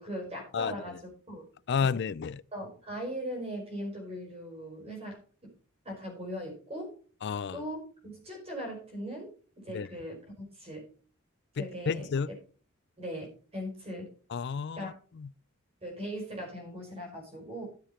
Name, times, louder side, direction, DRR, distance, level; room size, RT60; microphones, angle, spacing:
voice 1, 0.0-1.4 1.8-2.0 2.5-5.5 5.8-6.9 7.5-9.3 9.6-10.2 10.6-10.9 11.6-12.3 13.0-14.1 14.8-14.9 15.8-17.6, equal, 30° right, 5.0 m, -39 dB
voice 2, 1.7-2.4 7.2-7.6 9.7-9.9 11.6-12.3 14.3-15.3, left 6 dB, 55° left, 0.4 m, -31 dB
13.0 x 7.1 x 4.3 m
head